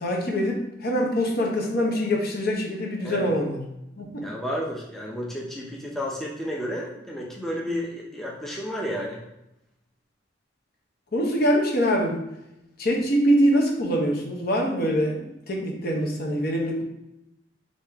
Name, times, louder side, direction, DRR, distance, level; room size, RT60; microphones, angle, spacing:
voice 1, 0.0-3.6 4.0-4.2 11.1-12.3 12.8-16.8, equal, 55° left, 1 dB, 0.9 m, -24 dB
voice 2, 4.2-9.2, equal, ahead, -3 dB, 0.6 m, -32 dB
4.8 x 2.8 x 3.4 m, 0.88 s
head